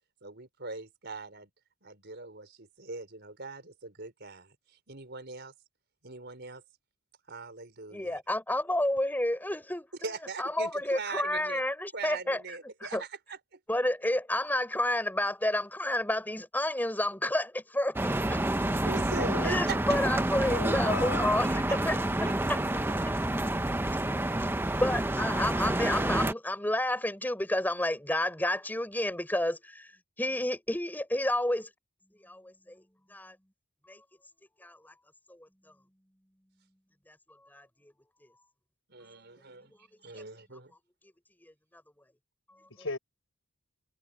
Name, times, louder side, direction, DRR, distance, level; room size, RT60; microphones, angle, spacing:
voice 1, 0.2-1.5 1.8-5.5 6.0-6.6 7.3-8.2 10.0-11.6 11.9-13.6 18.8-20.3 21.7-22.4 38.9-39.7 40.0-40.7, right 4 dB, 50° right, 5.0 m, -41 dB
voice 2, 7.9-9.9 10.4-12.4 12.8-13.0 13.7-18.4 19.4-21.5 21.8-22.6 23.8-24.0 24.8-29.9 30.2-31.7 32.2-32.8 33.1-33.3 33.9-34.0 34.6-34.9 35.3-35.5 37.1-37.2 37.5-37.7 41.4-41.5, left 1 dB, 10° left, 5.8 m, -30 dB
sound 1, 18.0-26.3, right 1 dB, 10° right, 0.7 m, -29 dB
voice 3, 19.2-19.6 20.5-21.3 42.7-43.0, left 3 dB, 65° left, 6.1 m, -36 dB
head